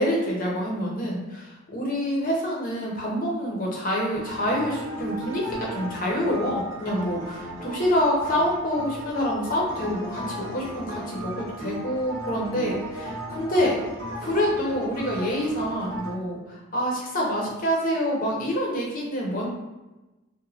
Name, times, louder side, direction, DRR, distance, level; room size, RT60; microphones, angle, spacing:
voice 1, 0.0-13.8 14.2-19.5, equal, 40° left, -2 dB, 0.6 m, -27 dB
sound 1, 4.1-16.1, right 1 dB, 75° right, 0.8 m, -36 dB
3.0 x 2.1 x 2.6 m, 1.1 s
head